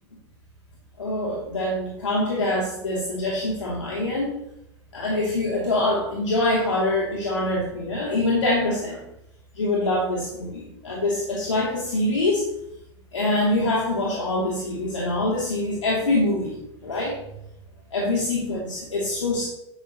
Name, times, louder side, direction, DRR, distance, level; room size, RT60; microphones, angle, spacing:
voice 1, 1.0-4.4 4.9-9.0 9.5-12.5 13.1-17.1 17.9-19.5, left 2 dB, 80° left, -5 dB, 2.9 m, -24 dB
11.5 x 10.0 x 3.1 m, 0.81 s
figure-of-eight pair, 90°, 15 cm